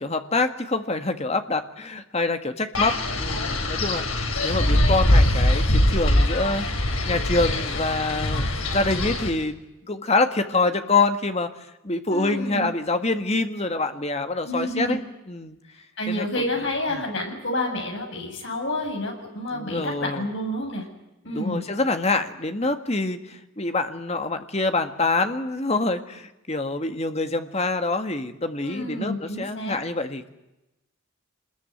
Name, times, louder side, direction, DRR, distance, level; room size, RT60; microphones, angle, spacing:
voice 1, 0.0-4.1 4.4-6.7 7.1-8.4 8.7-9.6 9.8-11.5 11.8-15.0 15.3-15.6 16.1-16.3 16.9-17.0 19.5-20.2 21.3-30.3, left 3 dB, 30° left, 7 dB, 1.7 m, -25 dB
Wind, 2.7-9.3, left 1 dB, 80° left, 4.6 m, -22 dB
voice 2, 12.1-12.7 14.4-15.0 16.0-20.8 21.2-21.6 28.6-29.8, left 1 dB, 60° left, 2 dB, 7.6 m, -29 dB
26.5 x 21.0 x 9.4 m, 0.95 s
head